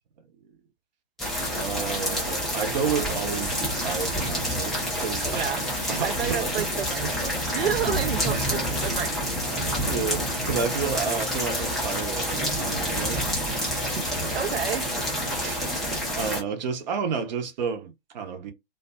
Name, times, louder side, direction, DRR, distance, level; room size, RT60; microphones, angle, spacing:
sound 1, 1.2-16.4, equal, ahead, 0.3 m, -28 dB
voice 1, 1.5-6.7 7.0-7.2 8.3-8.5 9.5-13.2 13.5-14.1 15.4-15.6 16.1-18.5, right 6 dB, 45° right, 0.7 m, -31 dB
voice 2, 5.3-5.6 6.0-9.8 14.3-14.9, right 8 dB, 80° right, 0.5 m, -30 dB
2.5 x 2.2 x 2.2 m
figure-of-eight pair, 120°, 30 cm